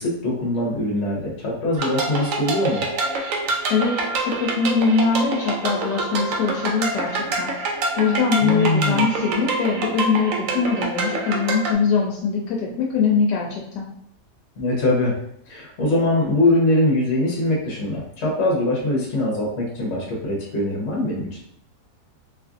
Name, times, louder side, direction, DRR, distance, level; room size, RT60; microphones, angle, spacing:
voice 1, 0.0-2.8 8.4-9.1 14.6-15.1 15.5-21.3, left 1 dB, 50° left, -3 dB, 1.0 m, -22 dB
sound 1, 1.8-11.7, right 2 dB, 75° right, 0.7 m, -26 dB
voice 2, 3.7-13.9, left 5 dB, 75° left, -2 dB, 1.2 m, -22 dB
2.9 x 2.5 x 2.4 m, 0.68 s
omnidirectional pair, 1.9 m